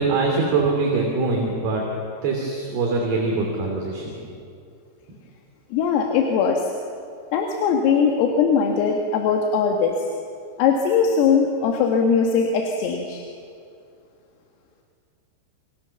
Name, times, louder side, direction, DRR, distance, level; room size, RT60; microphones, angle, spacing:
voice 1, 0.0-1.8 2.2-4.1, right 3 dB, 55° right, 0 dB, 4.6 m, -23 dB
voice 2, 5.7-6.7 7.3-10.1 10.6-13.2, left 6 dB, 85° left, 2 dB, 4.5 m, -20 dB
28.5 x 26.5 x 7.1 m, 2.4 s
omnidirectional pair, 5.9 m